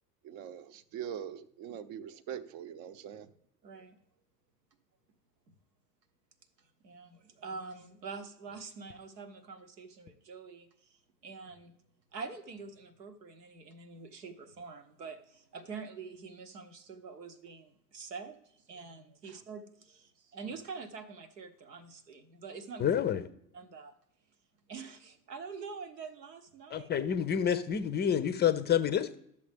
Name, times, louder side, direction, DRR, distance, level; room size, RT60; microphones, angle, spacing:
voice 1, 0.2-3.3 19.3-19.4, right 9 dB, 50° right, 14 dB, 0.7 m, -43 dB
voice 2, 3.6-4.0 6.8-10.9 11.2-11.7 12.1-22.9 23.5-24.0 24.7-26.9, right 5 dB, 85° right, 9 dB, 1.0 m, -45 dB
voice 3, 22.8-23.2 26.7-29.2, left 9 dB, 20° left, 13 dB, 0.5 m, -28 dB
11.0 x 7.0 x 3.4 m, 0.74 s
hypercardioid pair, 85°, 48 cm